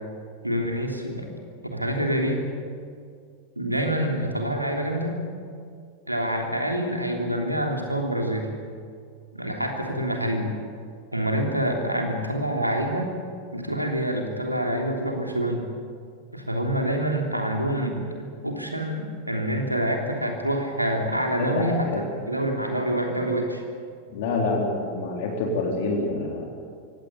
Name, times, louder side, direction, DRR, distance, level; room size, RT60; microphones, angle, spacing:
voice 1, 0.4-1.3 1.7-2.4 3.6-5.2 6.1-8.5 9.3-10.5 11.1-13.1 13.5-15.6 16.3-18.0 18.4-21.9 22.3-23.6, right 1 dB, 90° right, 2 dB, 3.2 m, -26 dB
voice 2, 21.4-22.0 24.1-26.5, left 3 dB, 50° left, 0 dB, 3.9 m, -27 dB
23.5 x 17.0 x 8.6 m, 2.2 s
figure-of-eight pair, 90°, 0 cm